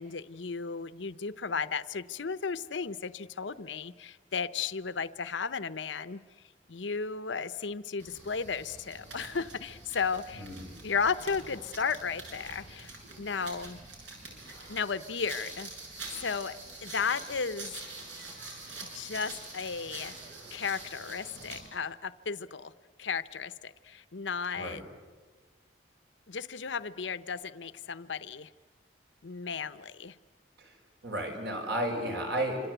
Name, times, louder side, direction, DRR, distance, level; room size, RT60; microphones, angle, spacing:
voice 1, 0.0-6.2 6.7-10.5 10.8-12.9 13.2-13.8 14.7-15.7 16.2-17.8 18.9-20.1 20.5-22.7 23.0-24.8 26.3-28.5 29.2-30.2, left 5 dB, 85° left, 13 dB, 0.8 m, -34 dB
sound 1, 8.0-21.7, right 3 dB, 85° right, 7.5 m, -45 dB
voice 2, 10.3-10.7 24.6-24.8 30.6-30.7 31.0-32.6, right 1 dB, 65° right, 3 dB, 5.6 m, -33 dB
27.0 x 26.0 x 8.1 m, 1.4 s
head